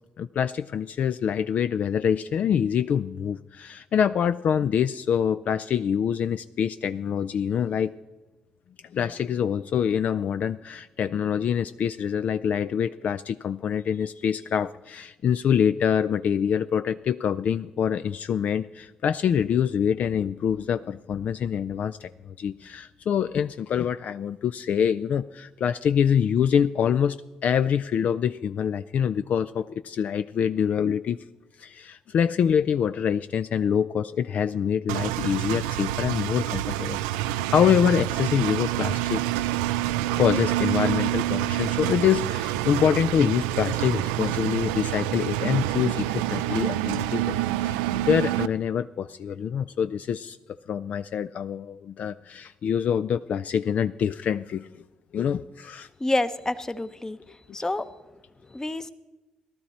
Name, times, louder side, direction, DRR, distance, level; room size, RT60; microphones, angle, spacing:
voice 1, 0.2-7.9 8.9-27.2 27.4-31.2 31.6-39.3 40.2-50.4 50.7-54.7 55.1-55.9, left 8 dB, 60° left, 12 dB, 0.3 m, -25 dB
Engine, 34.9-48.5, right 14 dB, 90° right, 0.3 m, -27 dB
voice 2, 56.0-57.2 57.5-57.9 58.5-58.9, left 2 dB, 20° left, 13 dB, 0.8 m, -28 dB
16.0 x 12.0 x 4.2 m, 1.1 s
hypercardioid pair, 55°, 3 cm